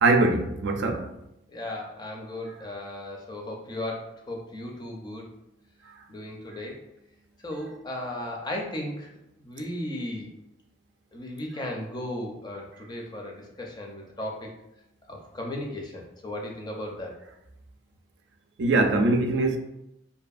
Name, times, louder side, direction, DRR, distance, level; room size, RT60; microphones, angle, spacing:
voice 1, 0.0-1.1 18.6-19.6, right 2 dB, 85° right, 4 dB, 0.4 m, -22 dB
voice 2, 1.5-5.3 6.1-6.8 7.4-9.1 9.4-10.3 11.1-14.5 15.1-17.1, left 1 dB, 25° left, 0 dB, 0.5 m, -36 dB
2.6 x 2.5 x 2.3 m, 0.84 s
head